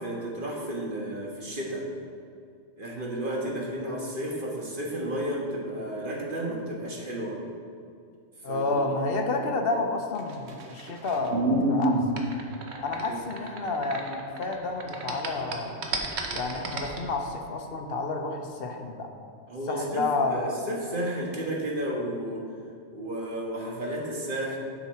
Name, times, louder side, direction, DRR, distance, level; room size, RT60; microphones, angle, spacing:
voice 1, 0.0-1.8 2.8-7.4 8.5-8.9 13.1-13.2 19.5-22.4 22.9-24.6, right 1 dB, 45° right, -3 dB, 1.6 m, -32 dB
voice 2, 8.4-12.0 12.8-15.7 16.3-19.1 19.7-20.5, left 3 dB, 55° left, 4 dB, 0.9 m, -30 dB
sound 1, 10.2-14.5 14.8-17.0, right 2 dB, 60° right, 1.2 m, -28 dB
9.8 x 5.9 x 4.3 m, 2.3 s
omnidirectional pair, 1.3 m